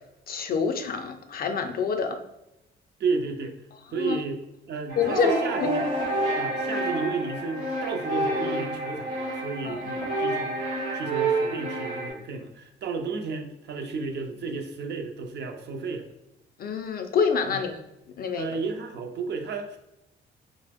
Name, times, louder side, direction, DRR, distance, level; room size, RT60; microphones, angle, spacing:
voice 1, 0.3-2.2 4.0-4.2 5.0-5.3 5.6-5.7 9.6-9.8 16.6-17.8 18.2-18.5, left 6 dB, 50° left, 7 dB, 0.4 m, -27 dB
voice 2, 3.0-3.5 3.9-5.9 6.2-10.6 10.9-16.1 17.5-17.6 18.3-19.8, right 4 dB, 60° right, 4 dB, 0.5 m, -32 dB
sound 1, 4.9-12.1, right 2 dB, 85° right, 1.0 m, -28 dB
2.9 x 2.0 x 3.4 m, 0.86 s
cardioid pair, 90°, 20 cm